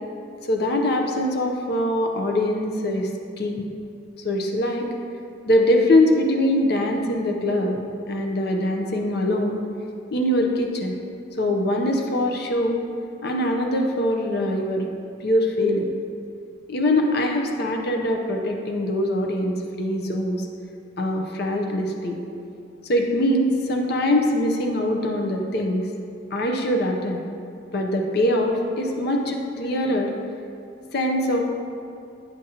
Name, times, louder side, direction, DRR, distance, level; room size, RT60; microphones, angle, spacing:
voice 1, 0.4-3.1 3.4-3.7 4.2-4.9 5.4-7.8 8.1-9.6 10.1-11.0 11.4-12.8 13.2-14.9 15.2-15.9 16.7-20.5 21.0-22.2 22.8-25.9 26.3-27.2 27.7-30.1 30.9-31.4, left 1 dB, 55° left, 2 dB, 0.6 m, -23 dB
9.8 x 5.1 x 2.8 m, 2.5 s
head